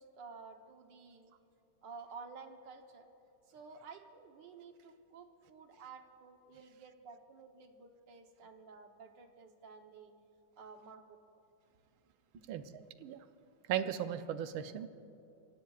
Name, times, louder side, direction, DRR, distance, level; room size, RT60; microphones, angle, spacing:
voice 1, 0.0-1.3 1.8-3.1 3.5-10.1 10.6-11.2 12.3-12.4, right 5 dB, 65° right, 5 dB, 1.6 m, -52 dB
voice 2, 13.7-14.9, right 10 dB, 80° right, 10 dB, 1.5 m, -36 dB
26.5 x 16.5 x 2.4 m, 2.8 s
omnidirectional pair, 2.2 m